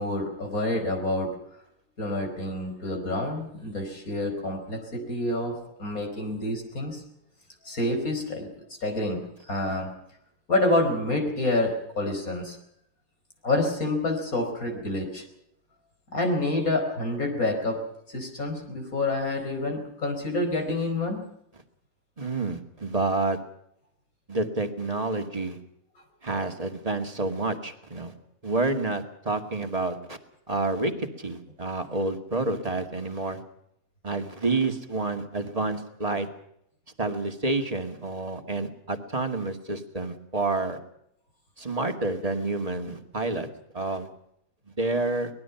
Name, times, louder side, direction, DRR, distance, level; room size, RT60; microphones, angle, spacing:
voice 1, 0.0-1.4 2.0-7.0 7.7-8.5 8.8-9.9 10.5-12.6 13.4-15.2 16.1-17.9 18.1-21.3, left 2 dB, 70° left, 4 dB, 5.2 m, -28 dB
voice 2, 22.2-23.4 24.3-25.6 26.2-28.1 28.4-30.2 30.5-33.4 34.0-36.3 37.0-40.8 41.6-43.5 43.7-44.1 44.8-45.3, right 2 dB, 25° right, 6 dB, 2.2 m, -29 dB
24.0 x 20.0 x 5.9 m, 0.75 s
omnidirectional pair, 1.5 m